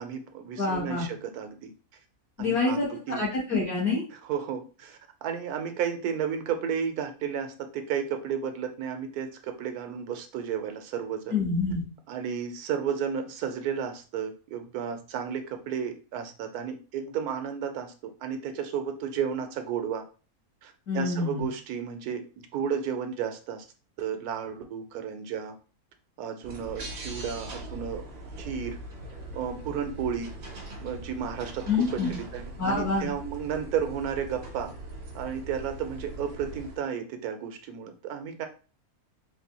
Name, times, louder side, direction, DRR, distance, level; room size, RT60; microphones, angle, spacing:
voice 1, 0.0-1.7 2.4-3.2 4.1-11.4 12.1-20.0 20.6-23.7 24.0-25.5 26.2-28.1 28.4-28.8 29.3-30.3 30.8-34.7 35.1-38.5, right 7 dB, 90° right, 7 dB, 1.1 m, -33 dB
voice 2, 0.6-1.1 2.4-4.0 11.3-11.8 20.9-21.4 31.7-32.1 32.6-33.1, left 4 dB, 85° left, -8 dB, 1.8 m, -27 dB
sound 1, 26.4-36.8, right 1 dB, 60° right, 1.1 m, -41 dB
3.9 x 2.6 x 2.8 m, 0.36 s
omnidirectional pair, 1.6 m